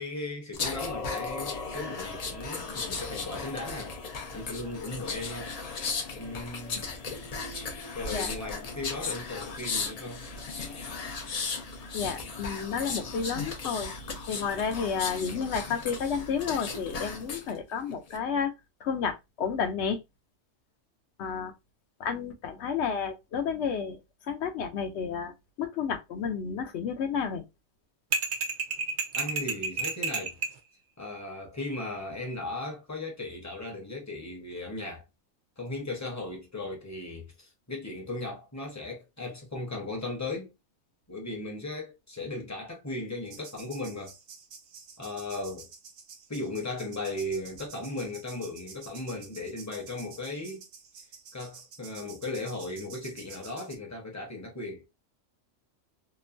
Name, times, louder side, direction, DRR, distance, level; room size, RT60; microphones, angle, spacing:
voice 1, 0.0-4.0 4.3-5.5 6.1-6.8 7.9-10.2 29.1-30.4 31.0-35.0 35.6-40.5 41.1-44.1 45.0-45.7 46.3-50.6 51.3-54.9, left 2 dB, 15° left, 0.7 m, -37 dB
sound 1, 0.5-17.5 17.9-18.2, left 4 dB, 50° left, 0.4 m, -36 dB
voice 2, 11.9-13.9 14.3-18.5 18.8-20.0 21.2-21.5 22.0-24.0 24.3-27.4, left 6 dB, 70° left, 0.8 m, -31 dB
sound 2, 28.1-30.6, right 4 dB, 60° right, 0.5 m, -30 dB
sound 3, 43.2-53.8, right 5 dB, 80° right, 1.0 m, -49 dB
2.9 x 2.1 x 2.5 m
omnidirectional pair, 1.3 m